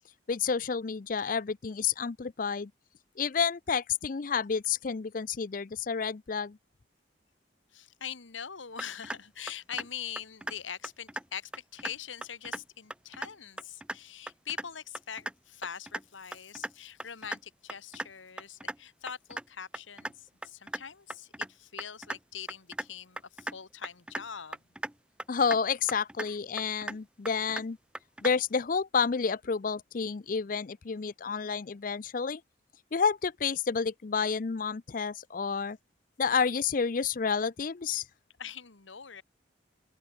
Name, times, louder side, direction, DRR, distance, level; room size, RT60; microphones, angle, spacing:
voice 1, 0.3-2.7 3.2-6.6 25.3-27.8 28.2-32.4 32.9-35.8 36.2-38.0, left 6 dB, 45° left, 0.5 m, -30 dB
voice 2, 7.7-24.6 26.2-26.4 38.4-39.2, left 8 dB, 85° left, 1.5 m, -43 dB
sound 1, 8.8-9.2 9.5-9.9 10.2-10.5 10.8-11.2 11.5-11.9 12.2-12.6 12.9-13.3 13.6-14.0 14.3-14.6 14.9-15.3 15.6-16.0 16.3-16.7 17.0-17.4 17.7-18.1 18.4-18.7 19.1-19.4 19.7-20.1 20.4-20.8 21.1-21.5 21.8-22.2 22.5-22.8 23.2-23.6 23.8-24.2 24.5-24.9 25.2-25.6 25.9-26.3 26.6-27.0 27.2-27.6 27.9-28.3, right 1 dB, 5° right, 0.7 m, -37 dB
open air
head